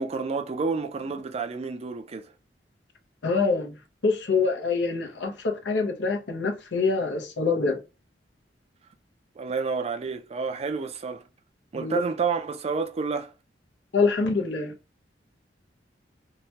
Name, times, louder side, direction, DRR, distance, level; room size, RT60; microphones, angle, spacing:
voice 1, 0.0-2.3 9.4-11.2 11.7-13.3, right 5 dB, 35° right, 0.4 m, -29 dB
voice 2, 3.2-7.8 11.7-12.0 13.9-14.7, left 4 dB, 85° left, 0.7 m, -25 dB
2.8 x 2.2 x 2.8 m
head